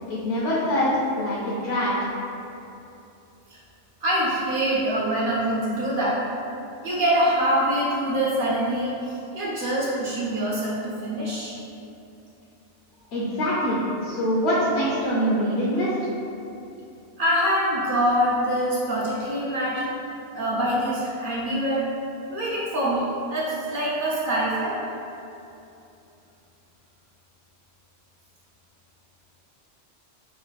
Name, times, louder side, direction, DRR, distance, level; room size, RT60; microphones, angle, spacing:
voice 1, 0.1-2.0 13.1-15.9, equal, 65° left, -7 dB, 0.8 m, -24 dB
voice 2, 4.0-6.2 6.8-11.6 17.2-19.9 20.3-21.8 22.3-24.8, right 1 dB, 60° right, -6 dB, 0.6 m, -24 dB
3.0 x 2.3 x 4.0 m, 2.8 s
omnidirectional pair, 1.2 m